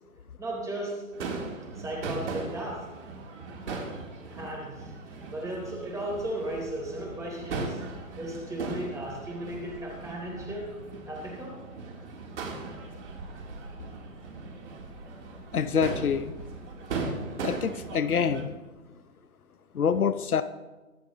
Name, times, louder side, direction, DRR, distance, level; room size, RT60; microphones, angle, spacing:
voice 1, 0.4-1.0 1.7-2.9 4.2-7.8 8.2-10.7 11.1-11.6, right 1 dB, 5° right, -2 dB, 3.9 m, -36 dB
Crowd / Fireworks, 1.1-18.4, right 3 dB, 55° right, 3.9 m, -38 dB
voice 2, 15.5-16.3 17.4-18.5 19.7-20.4, left 7 dB, 85° left, 11 dB, 0.9 m, -26 dB
24.5 x 11.5 x 3.2 m, 1.2 s
hypercardioid pair, 140°, 43 cm